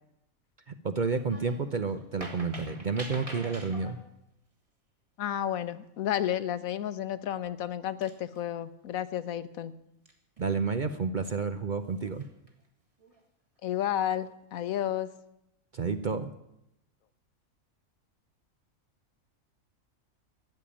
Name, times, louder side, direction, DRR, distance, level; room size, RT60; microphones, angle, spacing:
voice 1, 0.7-4.0 10.4-12.2 15.7-16.3, right 5 dB, 50° right, 9 dB, 0.6 m, -30 dB
sound 1, 1.2-1.6 2.0-4.0 6.7-6.9 7.5-7.6 8.0-8.6 10.1-10.7 11.9-12.5 13.0-13.2, right 1 dB, 25° right, 2.0 m, -45 dB
voice 2, 5.2-9.7 13.6-15.1, left 11 dB, 80° left, 14 dB, 1.2 m, -31 dB
13.5 x 7.3 x 9.9 m, 0.84 s
omnidirectional pair, 1.4 m